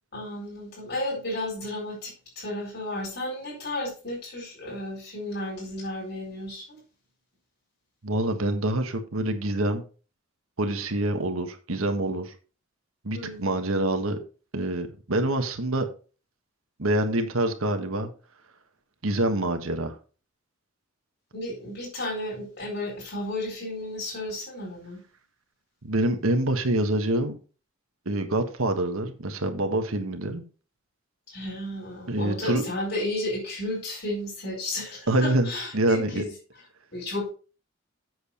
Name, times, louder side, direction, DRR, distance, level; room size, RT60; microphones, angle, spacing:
voice 1, 0.1-6.8 13.1-13.4 21.3-25.0 31.3-36.3 36.9-37.3, left 1 dB, 50° left, -4 dB, 4.7 m, -33 dB
voice 2, 8.0-9.8 10.6-12.3 13.0-14.2 14.5-15.9 16.8-18.1 19.0-19.9 25.8-27.4 28.0-30.4 32.1-32.6 35.1-36.2, right 1 dB, 85° right, 6 dB, 1.4 m, -26 dB
7.9 x 6.9 x 4.4 m, 0.35 s
head